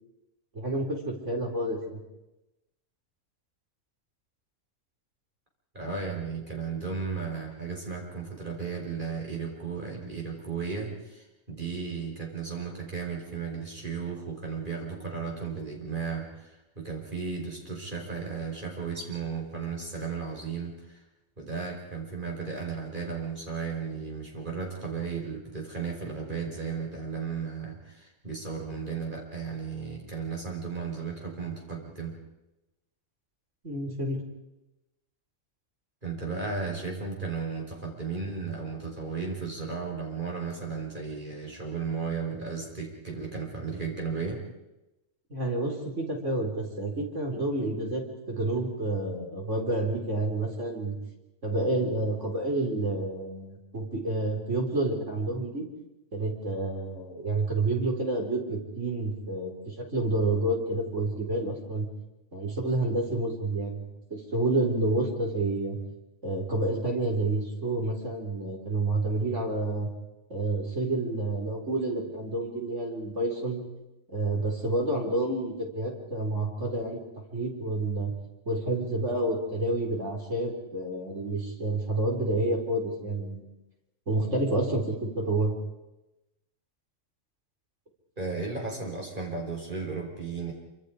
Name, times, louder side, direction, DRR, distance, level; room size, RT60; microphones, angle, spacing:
voice 1, 0.5-2.0 33.6-34.2 45.3-48.0 48.3-50.9 51.4-55.7 56.1-61.9 62.3-65.8 66.2-69.9 70.3-73.6 74.1-77.0 77.3-78.1 78.5-83.4 84.1-85.6, right 2 dB, 65° right, 0 dB, 4.7 m, -29 dB
voice 2, 5.7-21.0 21.4-32.1 36.0-44.4 88.2-90.5, right 5 dB, 40° right, 0 dB, 5.5 m, -35 dB
27.0 x 26.0 x 5.0 m, 0.96 s
omnidirectional pair, 1.4 m